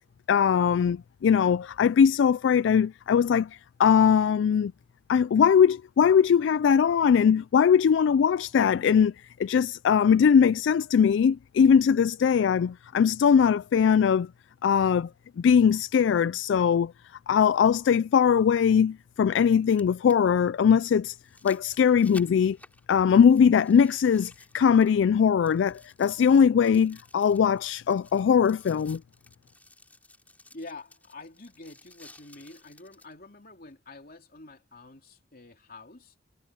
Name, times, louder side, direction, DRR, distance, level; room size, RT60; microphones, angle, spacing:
voice 1, 0.3-3.5 3.8-4.7 5.1-9.1 9.4-14.3 14.6-15.1 15.4-16.9 17.3-21.2 21.4-22.6 22.9-29.0, left 7 dB, 65° left, 0.3 m, -21 dB
sound 1, 16.2-16.3 18.2-18.3 19.4-25.2 25.5-33.1 33.7-33.8, left 2 dB, 10° left, 4.5 m, -54 dB
voice 2, 30.5-36.1, left 2 dB, 50° left, 2.9 m, -47 dB
head